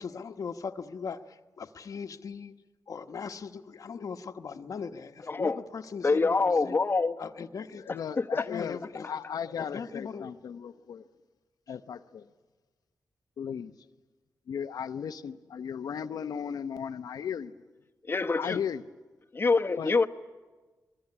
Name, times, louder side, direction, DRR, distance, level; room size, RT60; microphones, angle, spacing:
voice 1, 0.0-2.5 2.9-6.8 7.2-7.8 8.5-9.1 9.4-10.3 11.7-11.8, left 5 dB, 65° left, 1.2 m, -39 dB
voice 2, 5.3-5.6 6.0-7.2 8.2-8.4 18.1-18.6 19.3-20.1, left 4 dB, 35° left, 1.1 m, -25 dB
voice 3, 7.9-8.8 9.1-11.0 11.7-12.2 13.4-13.7 14.5-17.6 18.3-18.8 19.8-19.9, left 7 dB, 85° left, 0.8 m, -36 dB
23.0 x 21.5 x 9.8 m
cardioid pair, 85°, 6 cm